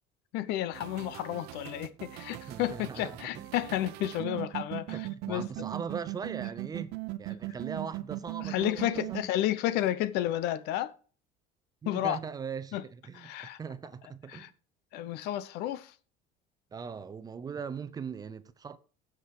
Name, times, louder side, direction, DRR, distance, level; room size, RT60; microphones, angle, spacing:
voice 1, 0.3-5.5 8.4-10.9 11.8-12.2 12.7-12.8 13.1-13.6 14.3-14.5 14.9-15.9, left 13 dB, 70° left, 0.9 m, -31 dB
sound 1, 0.7-9.2, right 20 dB, 70° right, 0.9 m, -39 dB
voice 2, 2.3-3.5 4.9-6.9 7.2-9.3 11.8-14.5 16.7-18.8, right 6 dB, 20° right, 0.6 m, -40 dB
16.0 x 6.0 x 4.8 m
cardioid pair, 150°, 18 cm